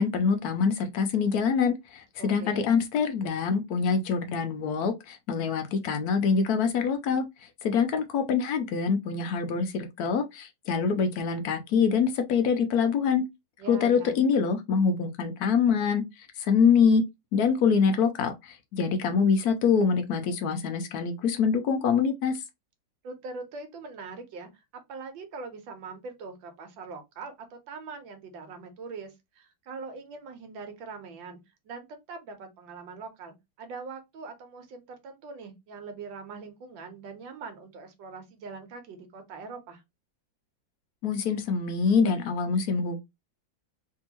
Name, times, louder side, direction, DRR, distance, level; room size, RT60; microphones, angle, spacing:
voice 1, 0.0-7.2 7.6-13.2 13.7-17.0 17.3-22.4 41.0-43.0, left 6 dB, 70° left, 1.0 m, -25 dB
voice 2, 2.2-2.6 13.6-14.2 23.0-39.8, right 4 dB, 90° right, 1.6 m, -42 dB
3.5 x 2.6 x 2.8 m
omnidirectional pair, 2.0 m